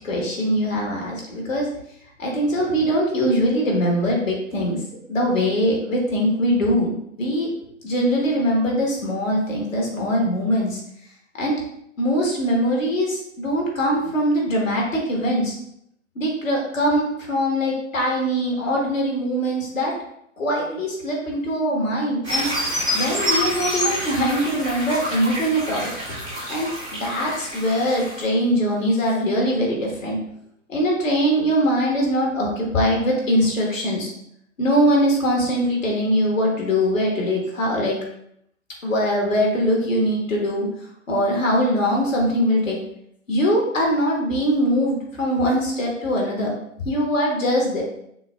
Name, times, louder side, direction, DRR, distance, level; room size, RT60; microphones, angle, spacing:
voice 1, 0.0-1.7 2.2-4.8 5.1-6.9 7.2-7.5 7.8-10.8 11.3-11.6 12.0-15.6 16.1-19.9 20.4-22.5 22.9-25.9 26.5-30.2 30.7-34.1 34.6-38.0 38.8-40.7 41.1-42.8 43.3-46.5 46.8-47.8, equal, 75° left, -2 dB, 1.4 m, -22 dB
sound 1, 22.2-28.2, equal, 5° left, 0.4 m, -27 dB
5.9 x 2.2 x 2.3 m, 0.74 s
figure-of-eight pair, 125°, 40 cm